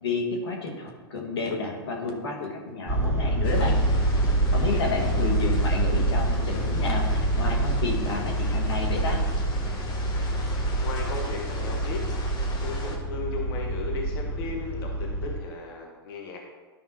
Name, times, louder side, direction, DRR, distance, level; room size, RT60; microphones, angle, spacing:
voice 1, 0.0-3.8 4.5-9.2, left 3 dB, 80° left, 1 dB, 2.0 m, -31 dB
sound 1, 2.9-15.4, right 1 dB, 10° right, 1.3 m, -26 dB
sound 2, 3.4-13.0, left 3 dB, 35° left, 1.5 m, -39 dB
voice 2, 4.5-5.0 10.8-12.0 12.6-16.4, left 3 dB, 65° left, 0 dB, 1.7 m, -36 dB
12.0 x 5.5 x 3.1 m, 1.4 s
hypercardioid pair, 115°, 13 cm